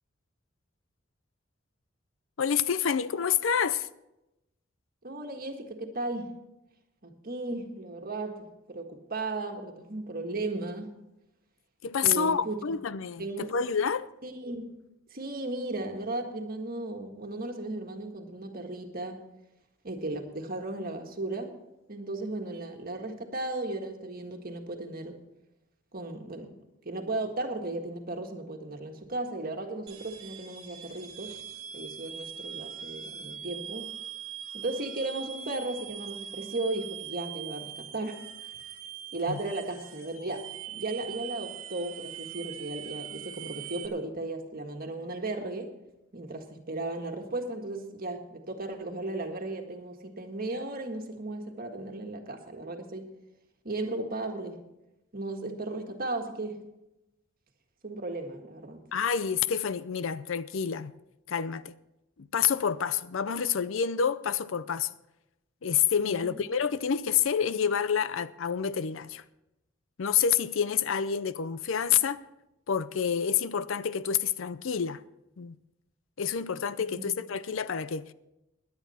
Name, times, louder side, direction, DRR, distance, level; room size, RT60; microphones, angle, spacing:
voice 1, 2.4-3.9 11.8-14.1 39.3-39.4 58.9-60.9 61.3-61.7 62.2-64.9 65.6-69.2 70.0-72.2 72.7-75.0 75.4-75.6 76.2-78.1, left 7 dB, 75° left, 0.5 m, -28 dB
voice 2, 5.0-6.4 7.0-10.9 12.0-12.6 13.2-13.5 14.2-14.8 15.1-19.2 19.8-21.5 21.9-25.2 25.9-26.5 26.8-31.3 31.7-33.9 34.5-38.2 39.1-45.7 46.1-53.1 53.6-54.6 55.1-56.6 57.8-58.8 66.0-66.4 76.8-77.2, right 2 dB, 45° right, 1.7 m, -35 dB
sound 1, 29.9-43.9, right 9 dB, 90° right, 1.3 m, -42 dB
17.0 x 10.5 x 4.3 m
head